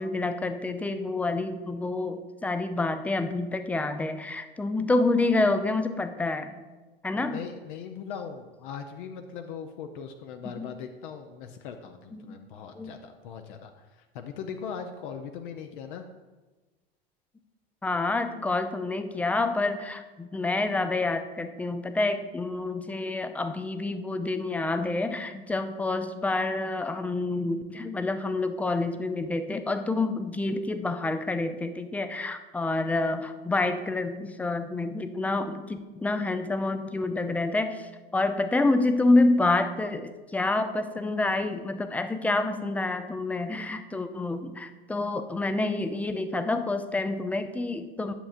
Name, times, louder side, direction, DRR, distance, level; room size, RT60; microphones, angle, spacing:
voice 1, 0.0-6.6 7.0-7.4 10.6-10.7 12.1-12.4 12.8-12.9 17.8-48.1, left 2 dB, 5° left, 9 dB, 0.3 m, -28 dB
voice 2, 7.1-16.1, left 7 dB, 55° left, 6 dB, 0.7 m, -40 dB
10.0 x 7.2 x 2.5 m, 1.2 s
figure-of-eight pair, 85°, 30 cm